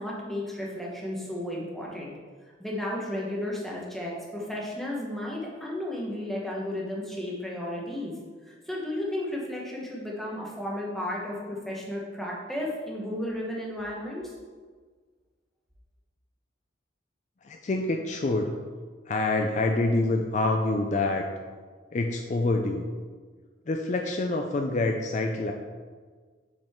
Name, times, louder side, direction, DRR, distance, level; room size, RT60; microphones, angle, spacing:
voice 1, 0.0-2.1 2.6-8.1 8.5-14.3, left 1 dB, ahead, -3 dB, 1.1 m, -33 dB
voice 2, 17.4-18.5 19.1-21.3 21.9-22.8 23.7-25.5, left 2 dB, 40° left, 3 dB, 0.4 m, -26 dB
7.3 x 5.1 x 3.6 m, 1.5 s
head